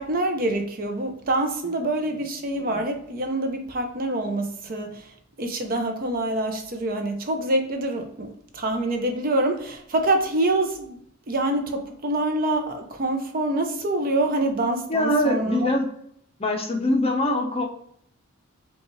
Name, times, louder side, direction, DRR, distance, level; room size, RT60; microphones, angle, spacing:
voice 1, 0.0-5.0 5.4-11.0 11.3-15.7, right 1 dB, 45° right, 0.6 m, -26 dB
voice 2, 14.9-15.8 16.4-17.7, left 1 dB, 30° left, 0.6 m, -23 dB
5.3 x 2.4 x 3.0 m
head